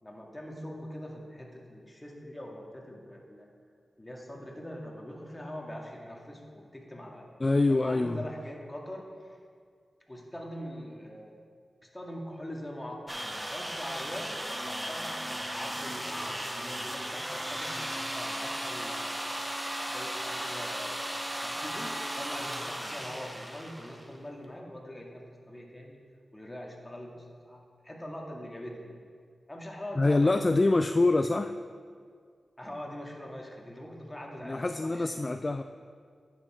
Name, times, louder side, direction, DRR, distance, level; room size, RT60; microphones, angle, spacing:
voice 1, 0.0-3.5 4.0-7.3 7.7-9.4 10.1-11.4 11.8-13.2 13.5-14.3 14.6-19.3 19.9-21.1 21.4-26.0 26.3-29.0 29.5-30.8 32.6-35.4, equal, 20° left, -1 dB, 2.2 m, -43 dB
voice 2, 7.4-8.2 30.0-31.5 34.4-35.6, left 2 dB, 40° left, 9 dB, 0.3 m, -25 dB
sound 1, 13.1-24.2, right 1 dB, 10° right, 1.1 m, -36 dB
10.0 x 7.2 x 4.4 m, 2.1 s
cardioid pair, 40°, 0 cm